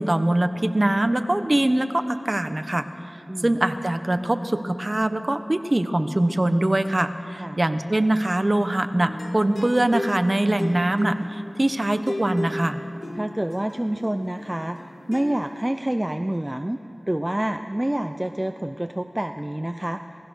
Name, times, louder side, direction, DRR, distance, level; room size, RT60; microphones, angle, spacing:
voice 1, 0.0-2.8 3.4-12.8, right 1 dB, 40° right, 9 dB, 1.2 m, -23 dB
sound 1, 9.0-15.7, left 1 dB, 85° left, 2.1 m, -35 dB
voice 2, 13.1-14.8 15.1-16.8 17.1-20.0, right 1 dB, 25° right, 7 dB, 0.7 m, -27 dB
27.5 x 18.5 x 6.5 m, 2.6 s
wide cardioid pair, 55°, 0 cm